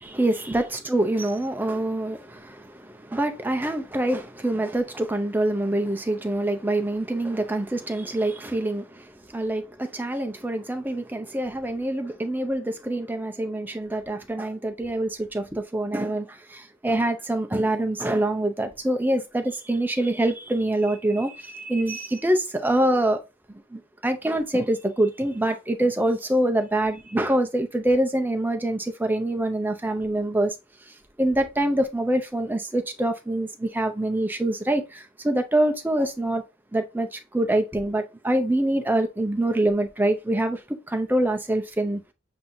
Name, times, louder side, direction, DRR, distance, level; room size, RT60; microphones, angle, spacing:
voice 1, 0.0-23.2 23.7-30.5 31.2-36.4 36.7-42.0, right 1 dB, 10° right, 0.5 m, -25 dB
7.3 x 2.7 x 2.6 m
head